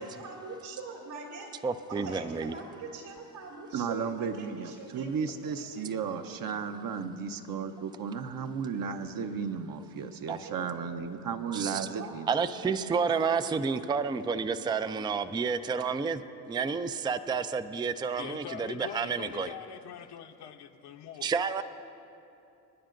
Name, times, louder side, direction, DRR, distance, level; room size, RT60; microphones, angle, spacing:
voice 1, 0.0-1.5 1.9-5.1 5.7-6.6 10.4-13.9, right 3 dB, 80° right, -3 dB, 2.9 m, -44 dB
voice 2, 1.6-2.5 10.3-10.4 11.5-11.9 12.3-19.5 21.2-21.6, right 5 dB, 10° right, 11 dB, 0.4 m, -30 dB
voice 3, 3.7-12.3, right 6 dB, 45° right, 7 dB, 0.8 m, -34 dB
voice 4, 18.2-21.3, left 9 dB, 60° left, 4 dB, 0.9 m, -43 dB
29.0 x 10.0 x 2.6 m, 2.7 s
supercardioid pair, 80°, 46 cm